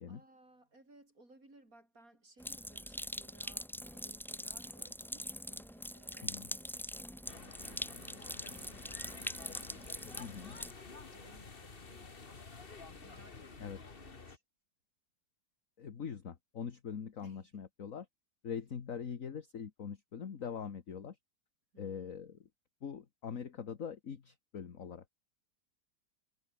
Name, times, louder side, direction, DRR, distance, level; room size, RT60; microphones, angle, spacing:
voice 1, 0.1-12.5 12.9-14.4 17.2-17.6 21.7-22.4, right 2 dB, 50° right, 7.6 m, -63 dB
sound 1, 2.4-10.7, equal, 5° left, 0.3 m, -43 dB
sound 2, 7.3-14.4, left 4 dB, 30° left, 1.8 m, -51 dB
voice 2, 10.2-10.6 13.6-13.8 15.8-18.1 18.4-21.2 21.8-22.5 22.8-25.2, left 7 dB, 50° left, 1.7 m, -43 dB
omnidirectional pair, 1.9 m